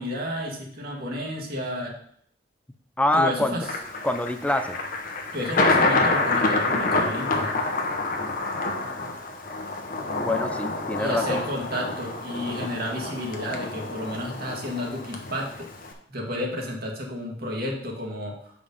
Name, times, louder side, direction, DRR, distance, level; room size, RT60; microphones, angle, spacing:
voice 1, 0.0-1.9 3.1-3.6 5.3-7.5 11.0-15.7 16.1-18.3, left 1 dB, 55° right, 0 dB, 1.9 m, -31 dB
voice 2, 3.0-3.7 4.0-4.8 10.2-11.4, left 1 dB, 10° left, 9 dB, 0.5 m, -25 dB
Thunder, 3.6-15.9, left 2 dB, 50° left, 1.1 m, -27 dB
7.4 x 5.0 x 5.4 m, 0.65 s
head